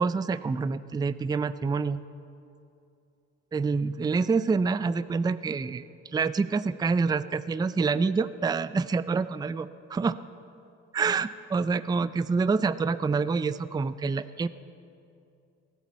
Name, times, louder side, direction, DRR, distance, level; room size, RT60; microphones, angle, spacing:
voice 1, 0.0-2.0 3.5-10.2 10.9-14.5, right 4 dB, 15° right, 14 dB, 0.4 m, -27 dB
16.5 x 9.9 x 7.3 m, 2.6 s
cardioid pair, 90°, 30 cm